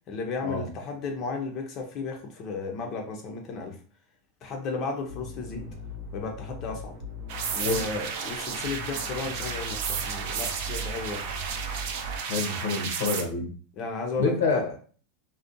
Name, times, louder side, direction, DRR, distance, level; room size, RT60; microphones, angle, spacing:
voice 1, 0.1-3.8 4.4-5.7 6.1-6.9 7.5-11.2 13.8-14.6, left 4 dB, 30° left, 3 dB, 0.4 m, -34 dB
sound 1, 5.1-12.2, equal, 75° right, 0.7 m, -39 dB
sound 2, 7.3-13.2, right 6 dB, 55° right, 0.4 m, -33 dB
voice 2, 12.2-13.5 14.2-14.7, left 3 dB, 90° left, 2 dB, 0.6 m, -27 dB
2.5 x 2.1 x 2.5 m, 0.41 s
supercardioid pair, 165°, 0 cm